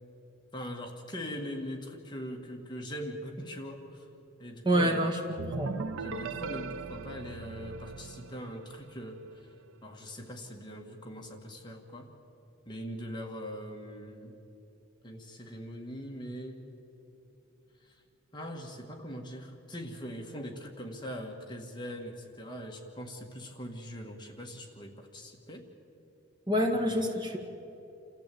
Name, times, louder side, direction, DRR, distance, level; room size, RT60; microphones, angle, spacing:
voice 1, 0.5-4.1 4.4-5.4 6.0-9.5 9.8-12.1 12.6-14.4 15.0-16.6 17.8-18.0 18.3-25.6 26.7-27.4, equal, 20° left, 2 dB, 1.7 m, -41 dB
voice 2, 4.6-5.8 26.5-27.4, equal, 20° right, 2 dB, 1.9 m, -27 dB
sound 1, 5.4-9.1, right 4 dB, 75° right, 0.5 m, -39 dB
28.5 x 14.5 x 8.5 m, 3.0 s
head